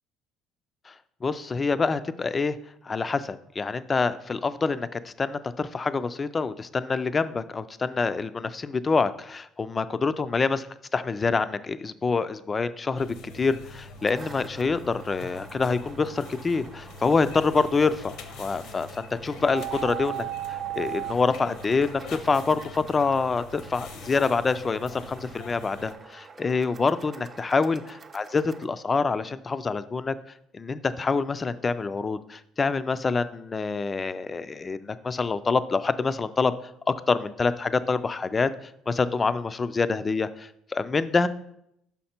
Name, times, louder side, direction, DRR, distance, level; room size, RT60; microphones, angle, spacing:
voice 1, 1.2-2.6 2.8-10.7 10.9-30.2 30.5-36.5 36.9-38.5 38.9-41.3, left 4 dB, 25° left, 13 dB, 0.3 m, -26 dB
sound 1, 13.0-25.9, left 3 dB, 70° left, 0.7 m, -44 dB
sound 2, 13.8-28.7, right 4 dB, 30° right, 0.5 m, -49 dB
sound 3, 19.5-21.1, right 15 dB, 80° right, 0.5 m, -33 dB
5.7 x 5.4 x 4.3 m, 0.77 s
cardioid pair, 130°, 0 cm